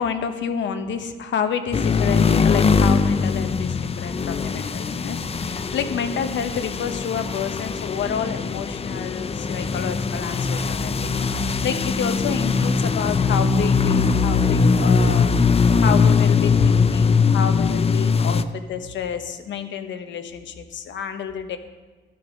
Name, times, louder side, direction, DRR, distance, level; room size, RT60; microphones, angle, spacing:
voice 1, 0.0-15.3 15.8-21.6, left 7 dB, 70° left, 8 dB, 1.2 m, -29 dB
sound 1, 1.7-18.4, left 5 dB, 30° left, 0.6 m, -21 dB
12.5 x 10.5 x 5.2 m, 1.3 s
cardioid pair, 90°, 20 cm